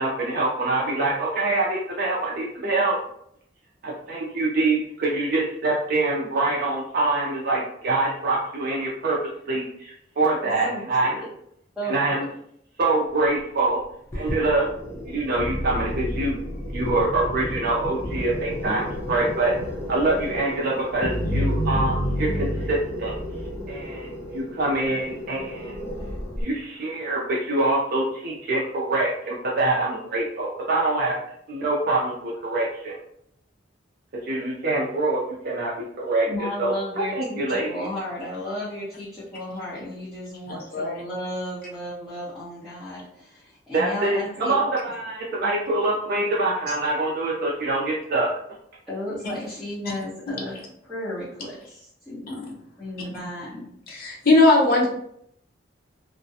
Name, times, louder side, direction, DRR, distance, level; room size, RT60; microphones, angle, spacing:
voice 1, 0.0-3.0 3.8-9.2 9.5-11.1 11.8-12.3 12.8-13.8 14.1-14.7 15.1-16.4 16.7-19.5 19.9-23.2 23.7-25.9 26.4-31.1 31.5-33.0 34.1-36.7 37.1-37.9 43.7-48.3, right 2 dB, 55° right, -4 dB, 0.4 m, -25 dB
voice 2, 10.4-11.3 11.8-12.2 36.3-44.6 48.9-50.6 50.9-52.3 52.8-53.7, equal, ahead, -14 dB, 0.9 m, -34 dB
sound 1, 14.1-26.4, equal, 15° left, 0.6 m, -30 dB
voice 3, 53.9-54.9, left 2 dB, 55° left, -1 dB, 0.6 m, -18 dB
2.4 x 2.1 x 2.7 m, 0.71 s
head